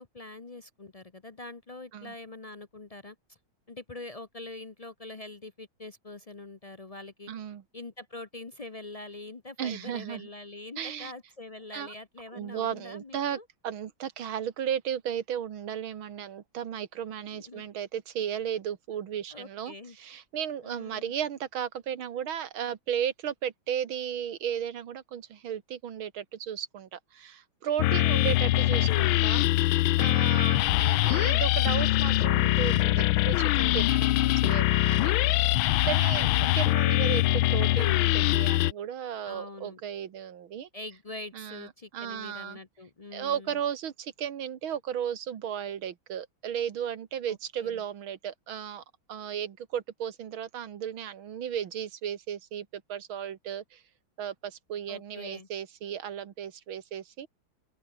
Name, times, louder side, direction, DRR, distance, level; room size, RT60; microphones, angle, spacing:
voice 1, 0.0-3.4 3.7-7.3 7.7-13.5 17.3-17.7 19.3-20.0 20.6-21.1 27.9-28.4 30.4-30.9 36.1-36.8 39.2-39.8 40.7-43.6 47.3-47.4 47.6-47.8 54.9-55.5, left 2 dB, 45° left, 0.4 m, -44 dB
voice 2, 7.3-7.6 9.6-10.3 10.8-11.1 11.7-11.9 12.3-35.6 35.8-40.7 41.3-42.6 43.1-48.8 49.1-53.8 54.2-57.3, right 9 dB, 90° right, 2.3 m, -35 dB
sound 1, 27.8-38.7, left 17 dB, 85° left, 1.4 m, -23 dB
open air
omnidirectional pair, 2.2 m